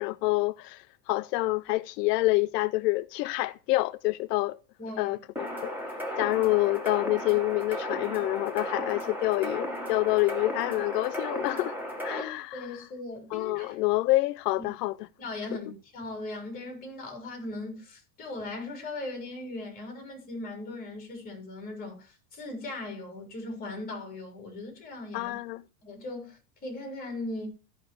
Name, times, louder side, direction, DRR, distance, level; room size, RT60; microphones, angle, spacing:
voice 1, 0.0-4.6 5.0-5.8 6.2-11.8 12.0-12.8 13.3-15.1 25.1-25.6, left 20 dB, 80° left, 0.5 m, -27 dB
voice 2, 4.8-5.2 12.1-13.8 14.6-14.7 15.2-25.3 25.8-27.5, left 2 dB, 20° left, 3.7 m, -39 dB
sound 1, 5.4-12.2, equal, 5° right, 1.2 m, -35 dB
13.5 x 5.4 x 4.5 m
supercardioid pair, 160°, 47 cm